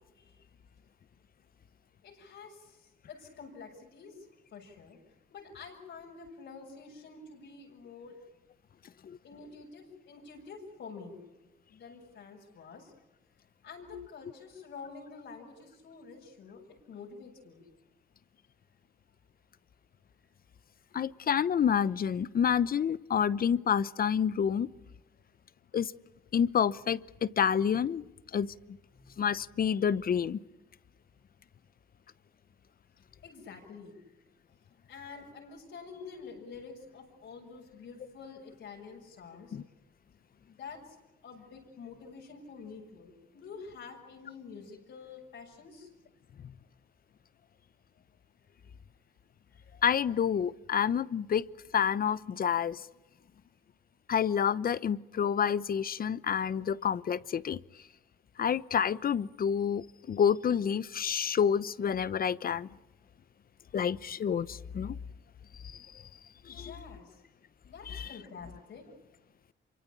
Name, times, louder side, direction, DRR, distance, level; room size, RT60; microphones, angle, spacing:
voice 1, 2.0-5.0 5.3-8.2 9.2-11.2 11.7-12.9 13.6-17.6 28.9-29.3 33.2-34.1 34.9-39.6 40.5-45.9 49.5-49.6 66.5-67.2 67.6-68.9, left 5 dB, 70° left, -1 dB, 7.1 m, -48 dB
voice 2, 20.9-24.7 25.7-25.9 26.3-28.0 28.3-28.8 29.2-30.4 39.5-39.6 49.8-51.4 51.7-52.9 54.1-57.6 58.4-62.7 63.7-65.0 65.6-65.9 66.5-66.7 67.9-68.1, left 8 dB, 50° left, 18 dB, 0.9 m, -28 dB
26.5 x 24.5 x 8.7 m, 0.97 s
cardioid pair, 90°, 20 cm